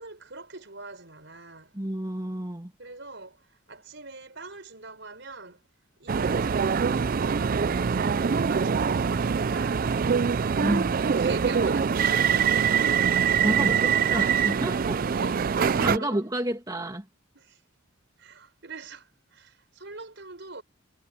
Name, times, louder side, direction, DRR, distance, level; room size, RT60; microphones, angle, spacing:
voice 1, 0.0-1.8 2.8-5.6 6.0-10.0 11.0-12.2 12.4-13.1 13.7-14.4 15.2-15.5 15.9-16.2 17.3-17.6 18.2-20.6, right 3 dB, 60° right, 5.7 m, -42 dB
voice 2, 1.7-2.7 10.6-11.0 13.3-15.0 15.6-17.1, right 1 dB, 20° right, 2.2 m, -30 dB
sound 1, 6.1-16.0, right 6 dB, 45° right, 0.4 m, -24 dB
head